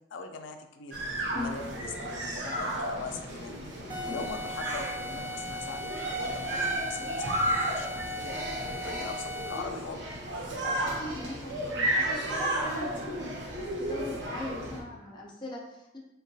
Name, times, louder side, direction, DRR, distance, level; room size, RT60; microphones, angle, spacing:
voice 1, 0.1-1.0 1.3-3.5 4.1-10.1, left 4 dB, 85° left, 5 dB, 0.4 m, -41 dB
sound 1, 0.9-14.8, right 1 dB, 70° right, 0.7 m, -33 dB
sound 2, 3.9-9.8, left 1 dB, 25° right, 0.6 m, -38 dB
voice 2, 10.6-13.5 13.8-16.0, left 2 dB, 25° left, -2 dB, 0.4 m, -40 dB
3.6 x 2.2 x 2.6 m, 0.91 s
head